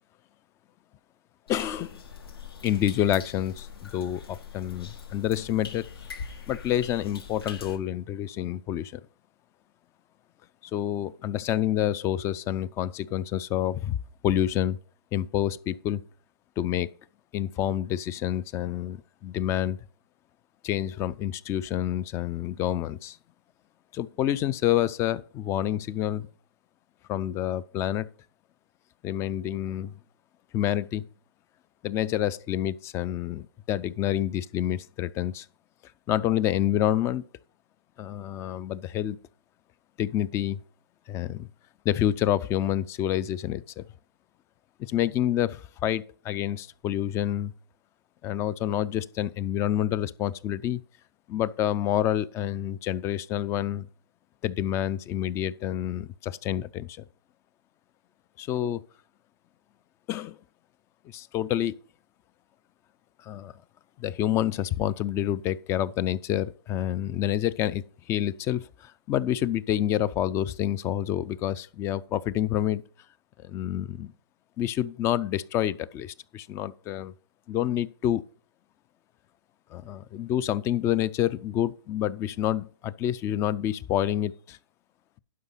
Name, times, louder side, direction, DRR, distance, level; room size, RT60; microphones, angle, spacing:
sound 1, 1.5-7.8, left 6 dB, 75° left, 2.0 m, -42 dB
voice 1, 1.5-2.0 2.6-5.8 6.5-9.0 10.7-14.0 14.2-14.8 15.1-16.0 16.6-16.9 17.3-19.8 20.6-23.2 23.9-26.3 27.1-28.1 29.0-29.9 30.5-31.1 31.8-35.5 36.1-37.2 38.0-39.2 40.0-40.6 41.1-41.5 41.8-43.8 44.8-47.5 48.2-50.8 51.3-53.9 54.4-57.1 58.4-58.8 60.1-60.4 61.1-61.8 63.2-63.5 64.0-72.8 73.4-74.1 74.6-77.1 77.5-78.2 79.7-84.6, left 11 dB, 20° left, 0.4 m, -28 dB
11.0 x 5.5 x 5.5 m
hypercardioid pair, 130°, 13 cm